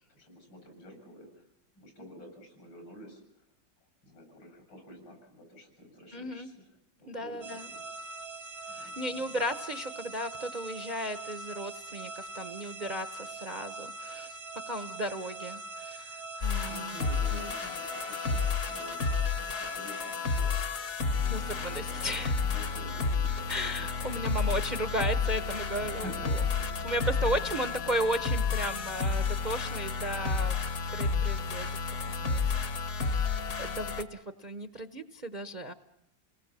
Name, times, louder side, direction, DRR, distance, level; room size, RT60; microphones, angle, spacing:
voice 1, 0.1-1.3 1.8-3.2 4.0-6.7 7.0-7.8 8.7-9.4 16.6-20.8 21.1-22.0 22.3-23.9 25.8-27.0, left 1 dB, 80° left, 4 dB, 8.8 m, -49 dB
voice 2, 6.1-6.5 7.1-7.7 8.7-14.4 14.7-17.0 17.3-17.5 21.3-22.3 23.5-26.4 26.8-30.6 30.9-31.8 32.1-32.4 32.9-35.7, right 1 dB, 35° right, 10 dB, 0.7 m, -35 dB
sound 1, 7.4-20.6, right 3 dB, 85° right, 2.4 m, -43 dB
sound 2, 16.4-34.0, left 5 dB, 50° left, 1.5 m, -31 dB
29.5 x 19.5 x 7.5 m, 0.86 s
omnidirectional pair, 2.0 m